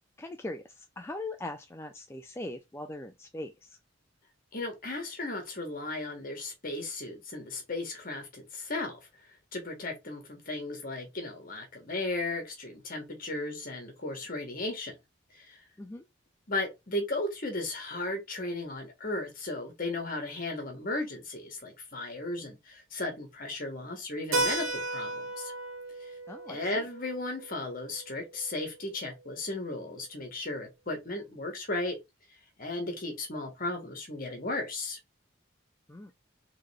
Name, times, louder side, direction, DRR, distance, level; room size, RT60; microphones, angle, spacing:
voice 1, 0.2-3.8 15.8-16.0 26.3-26.9 35.9-36.1, left 2 dB, 15° left, 0.3 m, -40 dB
voice 2, 4.5-9.0 9.5-14.9 15.4-15.6 16.5-25.5 26.5-31.9 32.6-35.0, left 2 dB, 45° left, 1.5 m, -35 dB
Keyboard (musical), 24.3-28.8, right 2 dB, 90° right, 1.0 m, -35 dB
3.8 x 3.2 x 3.3 m
head